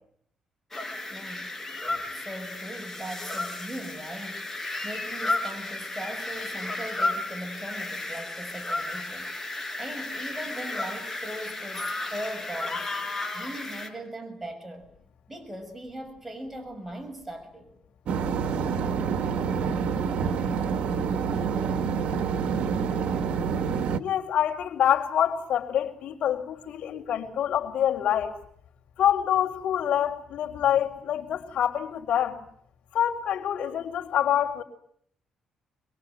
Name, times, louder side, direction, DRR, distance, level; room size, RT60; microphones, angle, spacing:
sound 1, 0.7-13.9, left 2 dB, 15° left, 5.9 m, -33 dB
voice 1, 1.1-1.5 1.9-9.3 9.8-12.9 13.3-14.9 15.3-17.7, right 1 dB, 5° right, 4 dB, 6.6 m, -39 dB
sound 2, 18.1-24.0, right 6 dB, 65° right, 1.7 m, -27 dB
voice 2, 24.0-28.4 29.0-32.4 32.9-34.6, left 10 dB, 70° left, -3 dB, 4.0 m, -26 dB
25.5 x 23.0 x 9.3 m, 0.67 s
cardioid pair, 110°, 2 cm